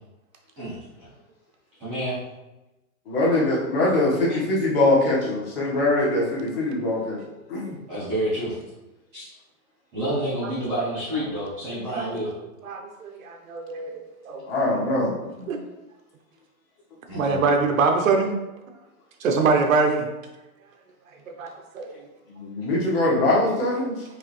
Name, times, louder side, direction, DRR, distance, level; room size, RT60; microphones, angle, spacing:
voice 1, 0.6-1.1 1.8-2.2 4.3-4.4 7.9-8.6 9.1-9.3 9.9-12.3 17.1-17.4, right 1 dB, 5° right, -18 dB, 0.5 m, -29 dB
voice 2, 3.1-7.2 7.5-7.7 14.5-15.2 22.3-24.0, left 2 dB, 40° left, -5 dB, 1.5 m, -22 dB
voice 3, 12.6-14.0 14.2-14.4 15.4-15.6 17.1-18.3 19.2-20.1 21.4-21.9, right 4 dB, 65° right, 4 dB, 0.8 m, -24 dB
4.7 x 3.1 x 3.2 m, 1.0 s
hypercardioid pair, 180°, 44 cm